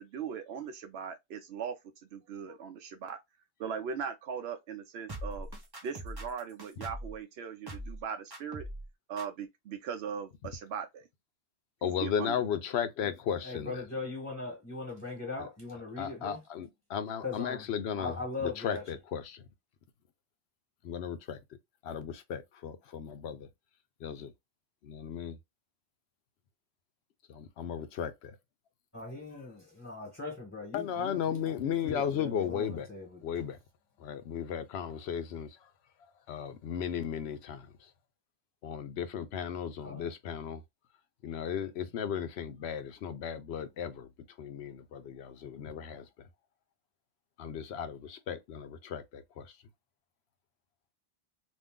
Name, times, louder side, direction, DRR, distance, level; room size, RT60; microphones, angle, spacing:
voice 1, 0.0-3.2 3.6-5.5 5.8-8.7 9.1-11.1 11.8-12.5, right 7 dB, 80° right, 0.8 m, -39 dB
sound 1, 5.1-7.2 7.7-8.0 8.3-8.9 9.2-9.3, right 1 dB, 25° right, 0.8 m, -41 dB
voice 2, 11.8-13.7 16.0-18.1 18.6-19.4 20.8-21.4 21.8-23.5 24.0-24.3 24.8-25.4 27.3-28.4 30.7-32.9 33.2-33.6 34.0-35.5 36.3-37.7 38.6-40.6 41.2-44.1 44.4-46.1 47.4-49.5, left 8 dB, 85° left, 0.9 m, -35 dB
voice 3, 13.4-16.4 17.2-17.7 18.0-18.9 28.9-33.2 39.8-40.1, left 3 dB, 15° left, 1.2 m, -40 dB
2.6 x 2.5 x 3.5 m
omnidirectional pair, 1.0 m